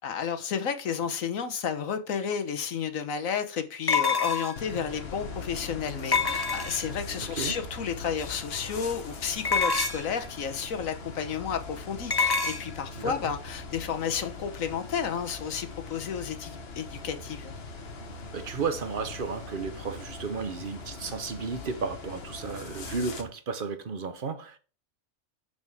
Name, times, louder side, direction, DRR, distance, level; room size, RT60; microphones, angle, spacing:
voice 1, 0.0-17.5, left 7 dB, 70° left, 1.4 m, -32 dB
sound 1, 2.3-2.4 3.9-4.7 6.1-7.0 9.4-10.2 12.1-12.6, left 5 dB, 30° left, 0.4 m, -26 dB
sound 2, 4.6-23.2, left 3 dB, 45° left, 1.3 m, -41 dB
voice 2, 13.0-13.3 18.3-24.6, right 5 dB, 45° right, 1.0 m, -33 dB
7.0 x 6.5 x 3.5 m
omnidirectional pair, 1.5 m